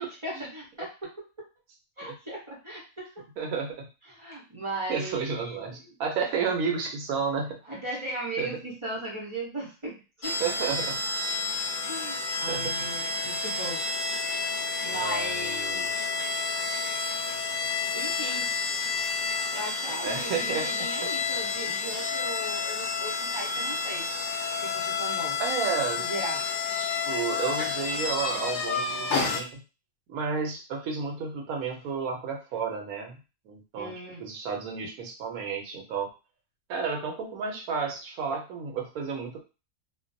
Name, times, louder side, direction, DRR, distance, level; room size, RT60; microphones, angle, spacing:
voice 1, 0.0-1.5 2.0-3.2 4.1-5.6 7.7-10.3 11.9-14.2 14.8-15.9 17.9-18.5 19.5-24.0 24.6-25.4 26.0-26.4 33.7-34.2, right 1 dB, 30° right, -4 dB, 0.6 m, -37 dB
voice 2, 3.4-3.9 4.9-7.6 8.4-8.5 10.4-11.0 12.5-12.7 14.9-16.1 20.0-20.7 21.7-22.1 25.4-26.0 26.8-29.5 30.1-33.2 33.4-33.9 34.2-36.1 36.7-39.4, right 5 dB, 80° right, 2 dB, 1.1 m, -32 dB
sound 1, 10.2-29.4, left 4 dB, 65° left, 0.8 m, -30 dB
2.5 x 2.1 x 2.5 m, 0.31 s
omnidirectional pair, 1.5 m